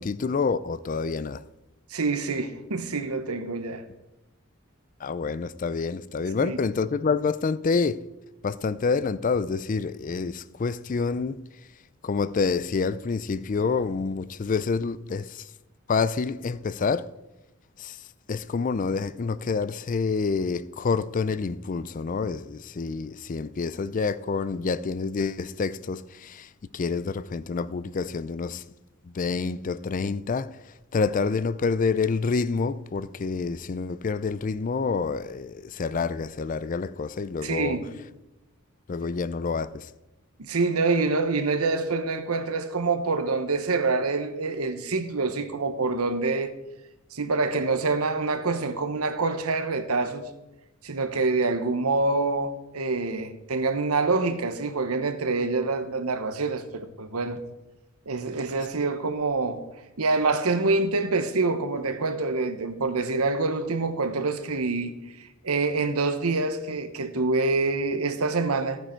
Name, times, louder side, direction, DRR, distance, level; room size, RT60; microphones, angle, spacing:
voice 1, 0.0-1.4 5.0-8.0 8.4-11.4 12.0-15.5 15.9-17.1 17.8-18.0 18.3-28.6 29.0-30.6 30.9-37.8 38.9-39.9, left 4 dB, 35° left, 0.4 m, -28 dB
voice 2, 1.9-3.8 6.4-6.6 37.4-37.9 40.4-46.5 47.1-50.3 50.8-57.4 58.1-59.6 60.0-65.0 65.4-68.8, right 3 dB, 85° right, 1.0 m, -26 dB
14.0 x 9.2 x 4.5 m
head